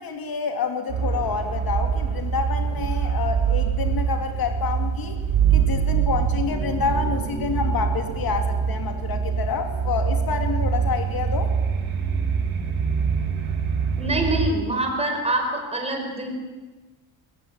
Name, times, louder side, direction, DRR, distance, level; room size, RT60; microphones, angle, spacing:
voice 1, 0.0-5.2 5.5-11.5, left 5 dB, 45° left, 6 dB, 2.6 m, -28 dB
sound 1, 0.9-14.5, right 6 dB, 80° right, 6.2 m, -24 dB
voice 2, 14.0-16.3, right 1 dB, 15° right, 2 dB, 5.0 m, -25 dB
22.5 x 20.0 x 8.8 m, 1.3 s
cardioid pair, 165°, 48 cm